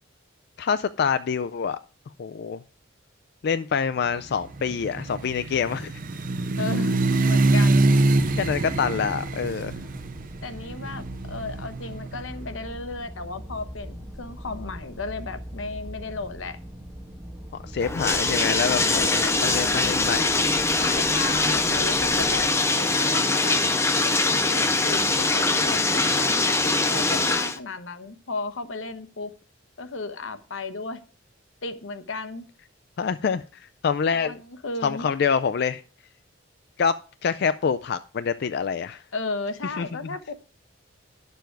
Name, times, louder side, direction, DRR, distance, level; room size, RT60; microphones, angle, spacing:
voice 1, 0.6-1.8 2.2-2.6 3.4-5.9 8.3-9.8 17.6-20.3 33.0-34.4 34.8-35.8 36.8-36.9 37.2-39.0 39.8-39.9, left 6 dB, 55° left, 13 dB, 0.4 m, -26 dB
sound 1, 4.3-12.3, right 2 dB, 45° right, 0.6 m, -24 dB
voice 2, 6.6-7.9 10.4-16.6 18.8-20.1 20.7-23.6 24.0-29.3 29.8-31.0 31.6-32.5 34.1-35.1 39.1-40.3, left 3 dB, 85° left, 10 dB, 0.9 m, -35 dB
sound 2, 7.3-22.5, equal, 5° right, 2.2 m, -41 dB
Bathtub (filling or washing), 17.8-27.6, left 3 dB, 15° left, 0.6 m, -22 dB
10.5 x 6.9 x 4.6 m, 0.36 s
head